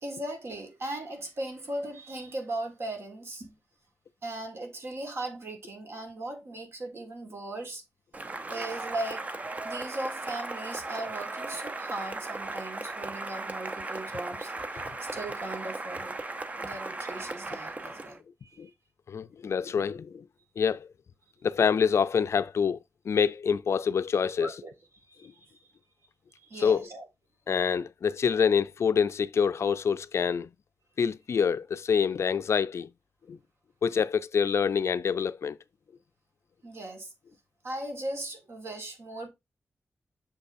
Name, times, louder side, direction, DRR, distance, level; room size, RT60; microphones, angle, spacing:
voice 1, 0.0-3.6 4.2-7.8 8.5-9.3 9.6-16.2 16.6-18.6 24.4-24.7 25.1-25.6 26.4-27.0 36.6-37.1 37.6-39.3, right 1 dB, 55° right, 1.7 m, -38 dB
Cheering / Applause, 8.1-18.2, right 2 dB, 30° right, 0.6 m, -37 dB
voice 2, 19.1-20.3 20.6-20.9 21.4-22.8 23.0-24.5 25.2-25.3 26.5-26.9 27.5-30.5 31.0-32.9 33.3-33.4 33.8-35.6, left 6 dB, 65° left, 0.4 m, -26 dB
6.7 x 5.5 x 2.6 m
wide cardioid pair, 165°, 5 cm